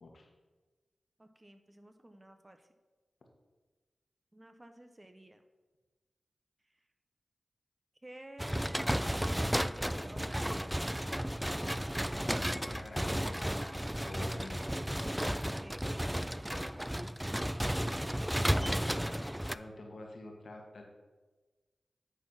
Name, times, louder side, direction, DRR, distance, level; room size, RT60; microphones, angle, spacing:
voice 1, 0.0-0.3 12.7-13.7 14.0-14.8 18.6-19.2 19.5-20.9, left 2 dB, 70° left, 1 dB, 1.7 m, -48 dB
voice 2, 1.2-2.7 4.3-5.4 8.0-10.9 15.6-16.1, right 1 dB, 25° right, 7 dB, 0.9 m, -53 dB
sound 1, 8.4-19.5, equal, 5° right, 0.3 m, -33 dB
9.2 x 4.4 x 5.7 m, 1.3 s
cardioid pair, 40°, 0 cm